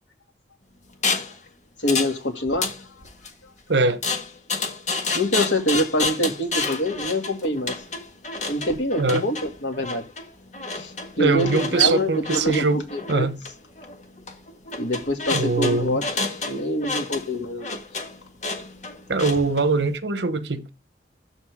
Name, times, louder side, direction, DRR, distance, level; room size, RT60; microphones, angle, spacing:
sound 1, 1.0-1.4 1.9-2.2 2.5-3.3 4.0-19.6, left 3 dB, 40° left, 1.7 m, -30 dB
voice 1, 1.8-2.7 5.1-7.7 8.5-10.0 10.7-10.9 11.2-13.3 14.8-16.0 16.4-17.8, left 1 dB, 90° left, 2.5 m, -25 dB
voice 2, 3.7-4.0 9.0-9.2 11.2-12.8 13.1-13.4 15.3-16.0 19.1-20.7, right 3 dB, 75° right, 1.0 m, -22 dB
12.5 x 4.3 x 3.6 m
head